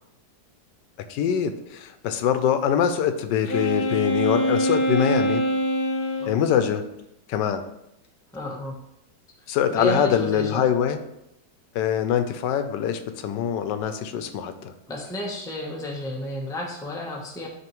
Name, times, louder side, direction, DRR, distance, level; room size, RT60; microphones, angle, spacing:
voice 1, 1.1-5.4 6.3-6.8 7.3-7.6 9.5-11.0 11.7-14.7, left 8 dB, 85° left, 9 dB, 1.3 m, -24 dB
Wind instrument woodwind instrument, 3.5-6.4, equal, 70° left, 1.2 m, -24 dB
voice 2, 8.3-8.7 9.7-10.6 14.9-17.5, left 1 dB, 5° left, -1 dB, 0.6 m, -31 dB
10.5 x 3.6 x 3.0 m, 0.85 s
omnidirectional pair, 1.8 m